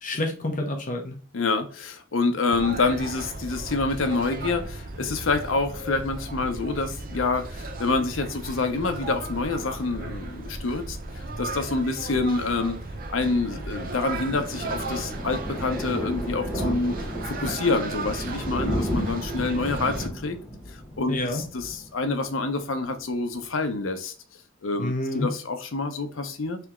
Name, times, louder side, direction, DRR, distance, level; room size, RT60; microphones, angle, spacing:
voice 1, 0.0-1.2 21.1-21.4 24.8-25.3, left 1 dB, 40° left, 0.7 m, -28 dB
voice 2, 1.3-12.8 13.1-20.4 21.0-24.1 24.6-26.6, left 3 dB, 85° left, 0.7 m, -27 dB
sound 1, 2.5-20.1, right 2 dB, 45° right, 0.6 m, -35 dB
Thunder, 13.4-22.6 22.9-23.1 23.4-23.5 23.7-23.8, equal, 5° left, 1.0 m, -33 dB
3.4 x 3.0 x 3.6 m
head